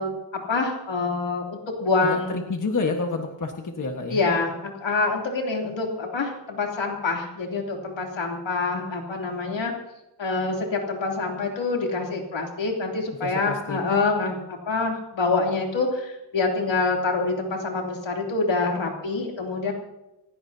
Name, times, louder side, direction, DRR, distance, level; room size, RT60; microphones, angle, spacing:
voice 1, 0.0-2.4 4.1-9.7 10.2-19.7, left 3 dB, 80° left, 0 dB, 3.1 m, -26 dB
voice 2, 2.0-4.2 13.2-13.8, left 3 dB, 45° left, 3 dB, 1.5 m, -29 dB
28.5 x 16.0 x 2.8 m, 0.95 s
wide cardioid pair, 145°, 44 cm